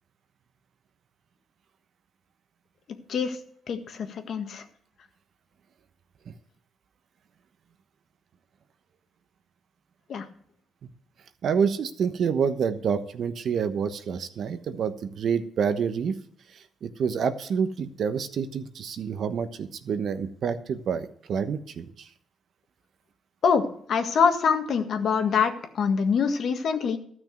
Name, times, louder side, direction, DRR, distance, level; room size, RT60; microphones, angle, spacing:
voice 1, 3.7-4.6 10.1-10.2 23.4-23.6 23.9-27.0, left 6 dB, 60° left, 7 dB, 1.6 m, -24 dB
voice 2, 11.4-16.2 16.5-22.1, right 6 dB, 60° right, 10 dB, 1.1 m, -28 dB
13.0 x 6.2 x 7.8 m, 0.63 s
cardioid pair, 90°, 0 cm